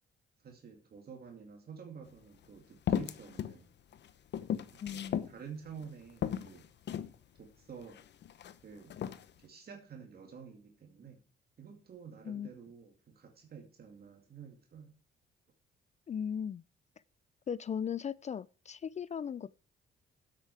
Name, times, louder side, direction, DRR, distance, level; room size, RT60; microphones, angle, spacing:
voice 1, 0.4-3.7 4.7-6.7 7.4-8.0 8.6-8.9 9.4-11.2 11.6-14.9, right 6 dB, 50° right, 2.4 m, -50 dB
sound 1, 2.1-2.2 2.9-3.6 3.9-5.3 5.8-5.9 6.2-7.1 7.8-8.5 8.9-9.3, left 9 dB, 60° left, 0.9 m, -35 dB
voice 2, 4.8-5.3 12.2-12.5 16.1-16.6 17.5-19.5, left 7 dB, 35° left, 0.4 m, -37 dB
10.0 x 8.2 x 4.8 m
cardioid pair, 90°, 20 cm